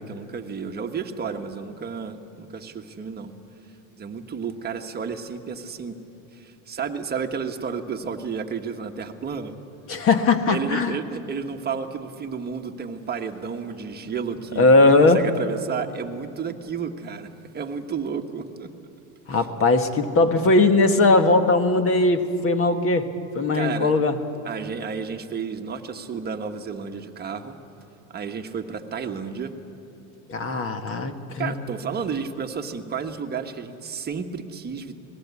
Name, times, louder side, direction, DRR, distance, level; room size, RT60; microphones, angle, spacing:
voice 1, 0.0-3.3 4.0-6.0 6.3-9.5 10.5-18.7 19.3-19.5 23.5-23.9 24.4-27.6 28.1-29.5 31.4-34.9, right 6 dB, 20° right, 5 dB, 1.4 m, -32 dB
voice 2, 9.9-11.0 14.6-15.3 19.3-23.1 23.4-24.2 30.3-31.6, left 2 dB, 30° left, 8 dB, 1.7 m, -19 dB
26.0 x 19.0 x 8.4 m, 2.7 s
supercardioid pair, 130°, 43 cm